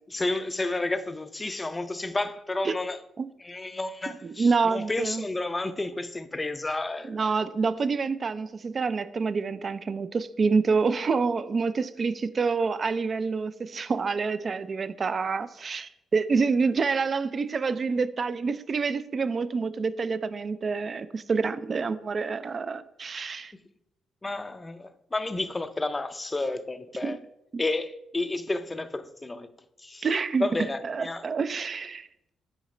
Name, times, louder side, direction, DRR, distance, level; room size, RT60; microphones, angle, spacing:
voice 1, 0.1-3.0 3.4-7.5 24.2-27.2 27.6-29.5 29.8-30.1 30.4-31.2, left 2 dB, 20° left, 0.5 m, -31 dB
voice 2, 4.2-5.2 7.1-23.5 27.0-27.2 27.5-27.6 30.0-30.5 30.8-32.1, right 4 dB, 40° right, 0.4 m, -27 dB
8.7 x 5.0 x 3.2 m
cardioid pair, 90°, 0 cm